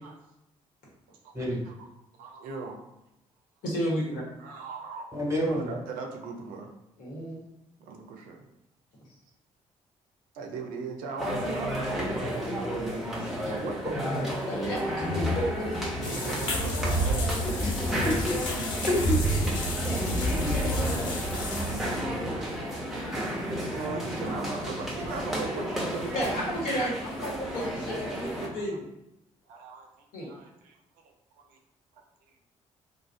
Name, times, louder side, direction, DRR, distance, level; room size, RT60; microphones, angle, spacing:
voice 1, 1.1-1.9 2.2-2.9 4.4-5.1 5.5-6.7 7.8-8.5 10.3-14.2 16.1-17.4 19.6-20.1 23.6-26.6 28.5-28.8 29.4-30.8 31.0-31.6 31.9-32.0, right 4 dB, 65° right, 2 dB, 0.4 m, -40 dB
voice 2, 3.6-4.2 7.0-7.4 13.2-13.3 14.5-15.7 26.1-28.8 30.1-30.3, equal, 60° left, -4 dB, 1.1 m, -32 dB
voice 3, 5.1-5.7 17.6-19.2 20.4-20.6, left 1 dB, 15° right, -3 dB, 1.3 m, -29 dB
sound 1, 11.2-28.5, equal, ahead, 0.9 m, -32 dB
sound 2, 15.0-21.2, left 3 dB, 30° left, 1.3 m, -37 dB
sound 3, 16.0-22.0, equal, 80° left, 0.6 m, -30 dB
2.4 x 2.1 x 3.2 m, 0.87 s
figure-of-eight pair, 45°, 16 cm